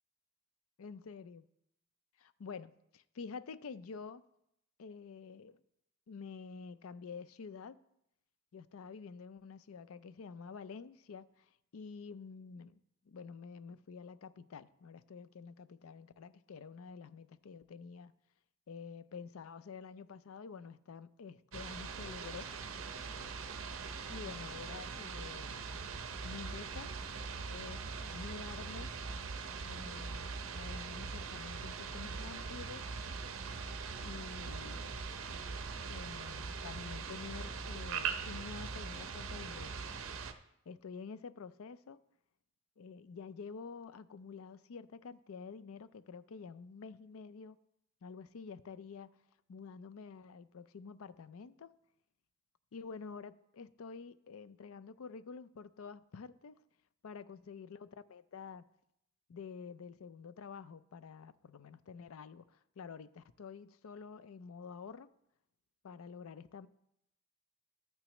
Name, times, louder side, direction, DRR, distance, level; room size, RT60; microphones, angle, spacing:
voice 1, 0.8-1.4 2.2-4.2 4.8-5.6 6.1-7.8 8.5-18.2 18.7-22.5 24.1-25.8 26.2-26.9 27.5-28.9 29.6-32.9 34.0-35.0 35.9-39.8 40.7-42.0 42.8-47.6 48.0-49.2 49.5-51.7 52.7-56.6 57.0-58.7 59.3-65.1 65.8-66.7, left 5 dB, 85° left, 0.4 m, -49 dB
sound 1, 21.5-40.3, right 5 dB, 75° right, 0.7 m, -42 dB
12.5 x 8.8 x 3.0 m
head